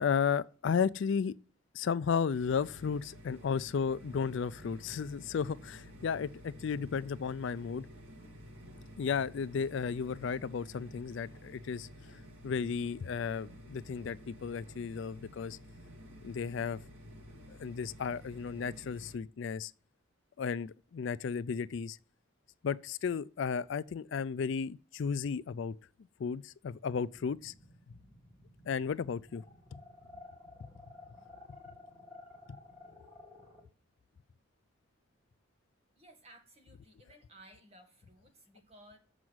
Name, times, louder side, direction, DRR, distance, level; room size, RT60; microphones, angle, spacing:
voice 1, 0.0-1.3 1.7-7.9 9.0-11.9 12.4-15.6 16.2-16.8 17.5-19.7 20.4-22.0 22.6-25.7 26.2-27.5 28.7-29.4 29.7-29.8, left 6 dB, 60° left, 0.3 m, -34 dB
sound 1, 2.3-19.2, equal, 75° right, 1.9 m, -52 dB
sound 2, 27.1-33.6, left 2 dB, 5° right, 3.0 m, -53 dB
voice 2, 36.0-39.0, right 1 dB, 30° right, 1.7 m, -58 dB
7.2 x 6.2 x 7.8 m
head